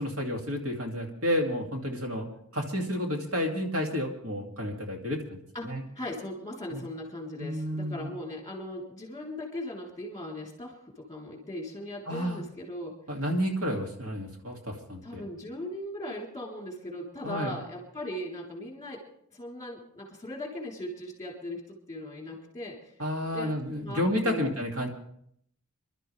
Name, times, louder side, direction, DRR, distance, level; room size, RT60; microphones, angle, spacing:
voice 1, 0.0-2.3 2.5-5.8 6.7-6.8 7.4-8.1 12.1-12.4 13.1-15.2 17.2-17.6 23.0-24.9, equal, 60° right, 1 dB, 2.5 m, -31 dB
voice 2, 5.5-12.9 13.7-13.8 15.0-19.0 19.3-22.9 23.3-23.5 23.8-24.5, left 1 dB, 15° left, -1 dB, 3.6 m, -39 dB
26.0 x 12.0 x 3.4 m, 0.69 s
head